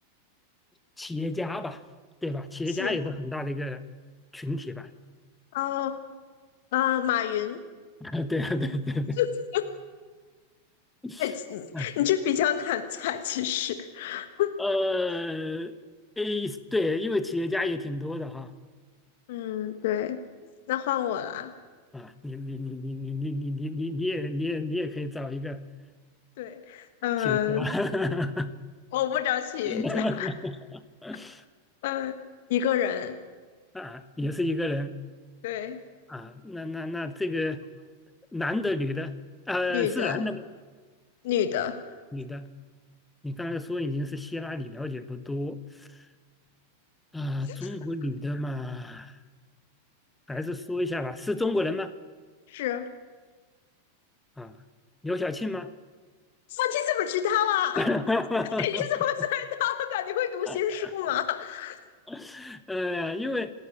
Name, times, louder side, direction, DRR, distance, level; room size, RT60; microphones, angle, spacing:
voice 1, 1.0-1.8 2.2-3.8 4.3-4.9 8.0-9.2 11.0-11.2 11.7-11.9 14.6-15.7 16.2-18.5 21.9-25.6 27.2-28.5 29.7-31.4 33.7-34.9 36.1-37.6 38.3-39.2 39.5-40.4 42.1-42.5 43.2-46.0 47.1-49.1 50.3-51.9 54.4-54.6 55.0-55.7 57.8-58.9 60.5-61.1 62.1-63.5, left 2 dB, 5° left, 12 dB, 1.2 m, -31 dB
voice 2, 5.5-6.0 6.7-7.6 9.2-9.3 9.5-9.6 11.2-14.5 19.3-20.2 20.7-21.5 26.4-27.7 28.9-30.3 31.8-32.2 32.5-33.2 35.4-35.8 39.7-40.2 41.2-41.8 47.5-47.7 52.5-52.9 56.5-57.8 58.4-61.8, left 11 dB, 55° left, 9 dB, 1.5 m, -28 dB
27.5 x 13.5 x 8.8 m, 1.4 s
figure-of-eight pair, 90°, 0 cm